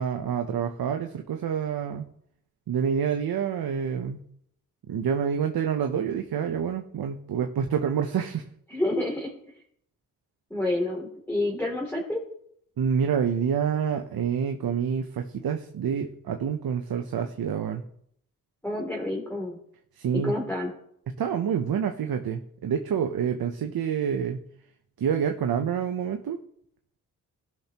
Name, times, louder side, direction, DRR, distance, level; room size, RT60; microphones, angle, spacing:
voice 1, 0.0-2.1 2.7-4.2 4.9-8.5 12.8-17.8 20.0-20.3 21.1-24.4 25.0-26.4, right 7 dB, 70° right, 5 dB, 0.9 m, -27 dB
voice 2, 8.7-9.3 10.5-12.2 18.6-19.6 20.1-20.7, left 1 dB, 5° left, -3 dB, 2.8 m, -28 dB
16.0 x 5.9 x 3.0 m, 0.70 s
cardioid pair, 50°, 37 cm